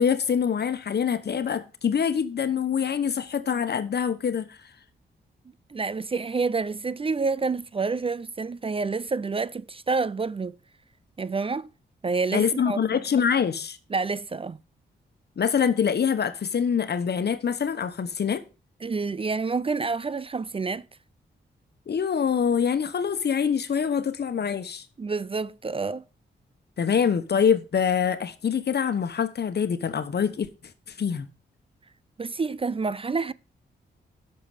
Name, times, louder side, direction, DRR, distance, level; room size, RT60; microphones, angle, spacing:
voice 1, 0.0-4.6 12.3-13.8 15.4-18.4 21.9-24.8 26.8-30.5 31.0-31.3, left 7 dB, 60° left, 1.2 m, -25 dB
voice 2, 5.7-10.6 11.2-11.7 12.0-13.0 13.9-14.6 18.8-20.8 25.0-26.0 32.2-33.3, right 4 dB, 30° right, 0.4 m, -28 dB
11.5 x 6.8 x 5.0 m
cardioid pair, 65°, 19 cm